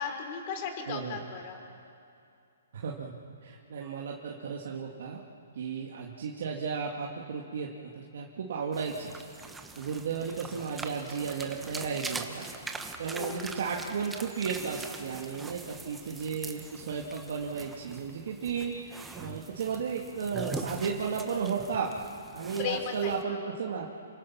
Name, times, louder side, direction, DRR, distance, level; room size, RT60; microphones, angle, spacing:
voice 1, 0.0-1.6 13.1-13.6 22.6-23.5, left 7 dB, 35° left, 5 dB, 3.6 m, -36 dB
voice 2, 0.9-1.2 2.7-3.1 3.4-5.2 5.6-9.1 9.8-12.5 13.0-21.9 22.3-23.9, right 6 dB, 60° right, -1 dB, 2.1 m, -34 dB
sound 1, 8.7-23.2, right 3 dB, 5° right, 1.2 m, -43 dB
28.0 x 24.5 x 6.1 m, 2.5 s
hypercardioid pair, 155°, 0 cm